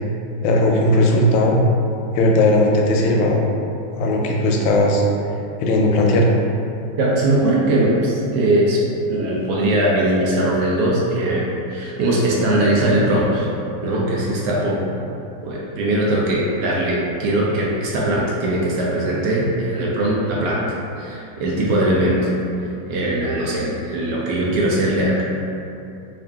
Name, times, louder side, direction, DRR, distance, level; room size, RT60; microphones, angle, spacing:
voice 1, 0.4-1.6 2.1-3.4 3.9-5.0 5.6-6.3, left 1 dB, 85° left, -1 dB, 1.3 m, -17 dB
voice 2, 7.0-8.8 9.1-13.5 13.8-14.8 15.4-20.6 21.0-22.3 22.9-25.2, right 1 dB, 70° right, -4 dB, 1.1 m, -20 dB
3.6 x 2.4 x 3.4 m, 2.7 s
omnidirectional pair, 2.1 m